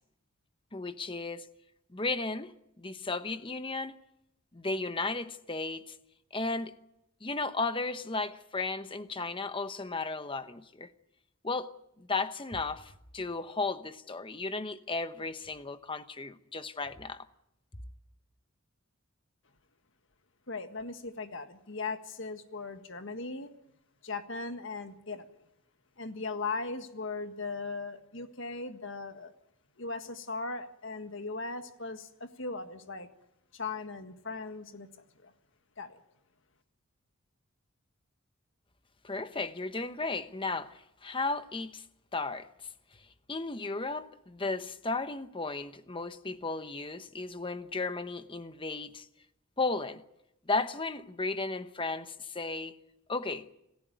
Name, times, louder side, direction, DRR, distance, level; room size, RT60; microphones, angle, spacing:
voice 1, 0.7-1.5 1.9-4.0 4.5-6.0 6.3-6.7 7.2-10.9 11.4-17.3 39.0-41.8 42.1-42.5 43.3-49.1 49.6-50.0 50.5-52.8 53.1-53.5, left 3 dB, 25° left, 1.0 m, -34 dB
voice 2, 20.5-23.5 24.0-25.3 26.0-29.3 29.8-33.1 33.5-34.9 35.2-35.3 35.8-36.0, left 3 dB, 60° left, 1.7 m, -38 dB
27.5 x 15.0 x 9.4 m
head